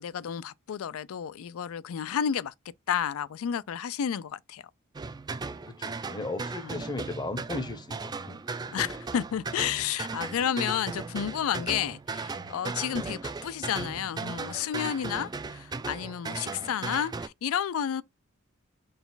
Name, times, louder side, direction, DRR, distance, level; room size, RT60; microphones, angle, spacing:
voice 1, 0.0-2.5 2.9-4.6 8.7-18.0, left 9 dB, 85° left, 0.4 m, -31 dB
sound 1, 4.9-17.3, right 4 dB, 20° right, 0.3 m, -37 dB
voice 2, 5.6-8.8 12.7-13.1 15.1-15.4, left 2 dB, 20° left, 0.7 m, -37 dB
4.0 x 2.3 x 3.9 m
head